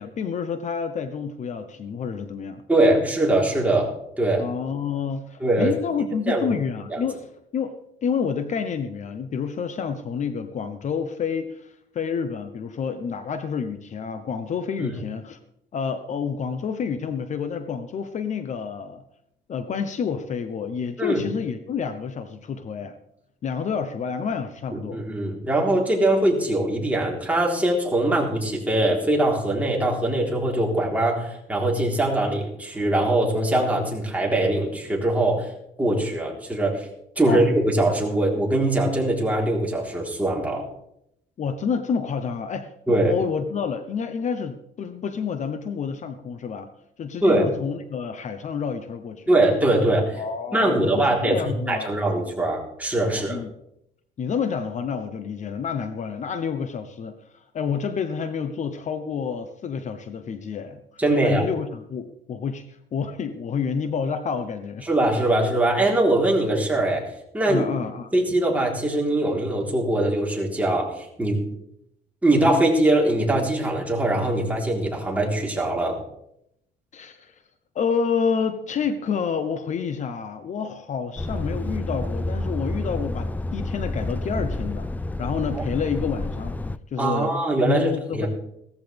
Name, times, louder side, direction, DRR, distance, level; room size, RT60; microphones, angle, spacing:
voice 1, 0.0-2.6 4.4-7.7 8.0-15.4 15.7-19.0 19.5-23.0 23.4-25.0 37.3-37.4 41.4-46.7 47.0-49.3 50.2-51.9 53.1-53.5 54.2-64.9 67.5-68.1 76.9-77.4 77.7-84.9 85.2-86.6 86.9-87.3 87.6-88.3, left 6 dB, 45° left, 10 dB, 0.9 m, -29 dB
voice 2, 2.7-4.5 5.4-5.7 6.3-6.5 6.9-7.0 14.8-15.0 21.0-21.2 24.9-35.5 35.8-36.9 37.2-40.7 42.9-43.1 47.2-47.5 49.3-50.2 50.5-53.4 61.0-61.5 64.9-67.7 68.1-71.4 72.2-76.0 85.5-85.6 87.0-88.3, right 1 dB, 10° right, -2 dB, 3.9 m, -22 dB
Truck, 81.2-86.8, left 2 dB, 10° left, 0.4 m, -29 dB
16.5 x 14.0 x 3.5 m, 0.78 s
cardioid pair, 110°, 17 cm